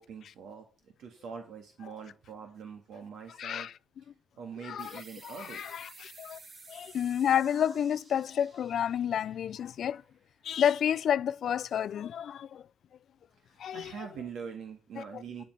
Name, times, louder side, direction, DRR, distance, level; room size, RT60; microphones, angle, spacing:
voice 1, 0.0-3.7 4.4-5.8 13.5-15.4, right 6 dB, 75° right, 1.6 m, -44 dB
voice 2, 3.4-3.7 4.6-6.4 6.7-10.0 10.4-12.6 13.6-14.1 15.0-15.2, left 9 dB, 65° left, 0.3 m, -30 dB
sound 1, 4.8-10.1, right 3 dB, 50° right, 6.1 m, -53 dB
12.5 x 5.2 x 4.6 m
cardioid pair, 90°, 0 cm